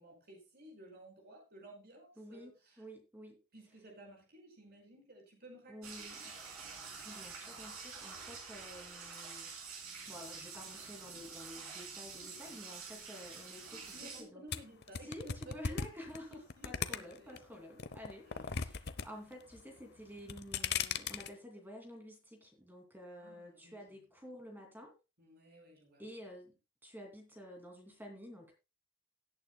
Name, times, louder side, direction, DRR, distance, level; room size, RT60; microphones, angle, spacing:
voice 1, 0.0-2.8 3.5-6.1 6.5-6.6 13.7-15.8 16.3-17.6 18.3-18.5 23.2-23.8 25.2-26.1, right 1 dB, 45° right, 0 dB, 5.2 m, -55 dB
voice 2, 2.2-2.5 2.8-3.4 5.7-6.2 7.0-14.4 15.0-24.9 26.0-28.5, equal, 10° right, 2 dB, 2.6 m, -51 dB
sound 1, 5.8-14.2, right 5 dB, 75° right, 3.9 m, -47 dB
sound 2, 14.5-17.4 17.8-19.1 19.3-19.8 20.2-21.3, left 6 dB, 50° left, 0.7 m, -37 dB
17.5 x 8.8 x 2.2 m, 0.28 s
head